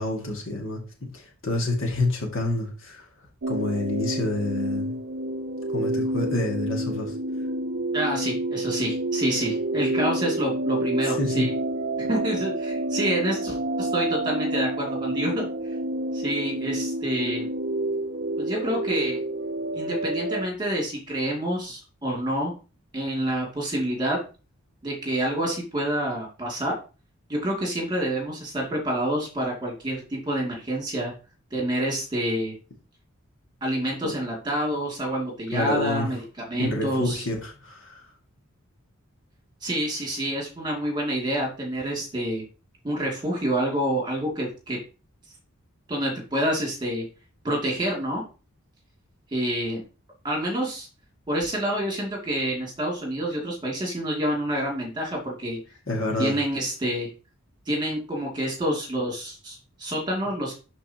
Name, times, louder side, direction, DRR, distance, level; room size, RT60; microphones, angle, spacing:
voice 1, 0.0-3.1 3.5-4.9 5.7-7.1 11.0-11.5 34.0-34.1 35.5-36.1 36.6-38.0 55.9-56.3, left 2 dB, 60° left, 1 dB, 2.1 m, -28 dB
sound 1, 3.4-20.5, right 1 dB, 50° right, 0.4 m, -29 dB
voice 2, 7.9-11.5 12.0-15.5 16.1-17.5 18.4-19.2 19.7-22.5 22.9-24.2 24.8-26.8 27.3-31.1 31.5-32.5 33.6-37.2 39.6-42.4 42.8-44.8 45.9-47.0 47.4-48.2 49.3-49.8 50.2-50.9 51.3-55.6 56.2-57.1 57.7-60.5, right 1 dB, 20° right, -1 dB, 2.5 m, -28 dB
12.5 x 4.2 x 2.9 m, 0.34 s
head